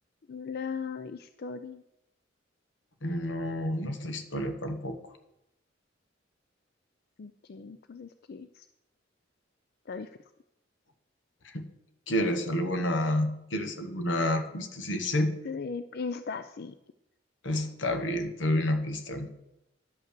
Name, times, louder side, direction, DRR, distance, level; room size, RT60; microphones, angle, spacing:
voice 1, 0.3-1.8 7.2-8.7 9.9-10.2 15.4-16.7, left 5 dB, 55° left, 10 dB, 0.4 m, -38 dB
voice 2, 3.0-5.0 11.4-11.7 12.1-15.4 17.4-19.4, left 1 dB, 85° left, 7 dB, 1.2 m, -29 dB
10.5 x 5.4 x 6.7 m, 0.87 s
head